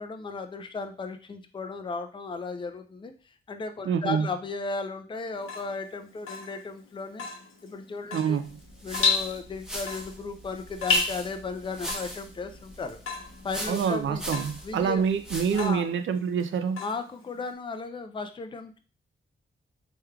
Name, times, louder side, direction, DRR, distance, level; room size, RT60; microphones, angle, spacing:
voice 1, 0.0-7.3 7.6-8.4 8.8-13.0 13.4-14.2 14.6-15.0 15.5-15.9 16.8-18.8, left 4 dB, 25° left, 7 dB, 0.4 m, -35 dB
voice 2, 3.9-4.3 8.1-8.5 13.7-16.8, right 7 dB, 75° right, 9 dB, 0.4 m, -26 dB
Water tap faucet / Drip, 5.3-17.5, left 4 dB, 80° left, 0.9 m, -33 dB
sound 1, 8.4-15.8, equal, 5° right, 0.8 m, -40 dB
3.5 x 3.2 x 2.3 m, 0.37 s
cardioid pair, 85°, 21 cm